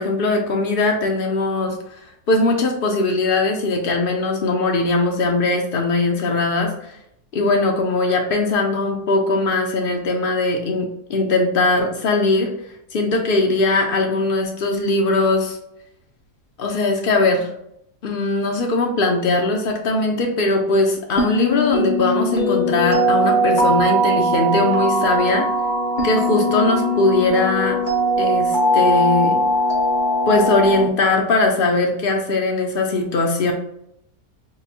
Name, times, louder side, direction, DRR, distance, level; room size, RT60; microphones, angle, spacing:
voice 1, 0.0-1.8 2.3-6.7 7.3-12.5 12.9-15.6 16.6-17.5 18.0-25.4 26.0-27.8 28.2-29.4 30.3-33.5, left 2 dB, 75° left, 2 dB, 0.5 m, -20 dB
sound 1, 21.2-30.8, equal, 35° left, 0.9 m, -20 dB
6.6 x 2.2 x 2.7 m, 0.75 s
omnidirectional pair, 1.8 m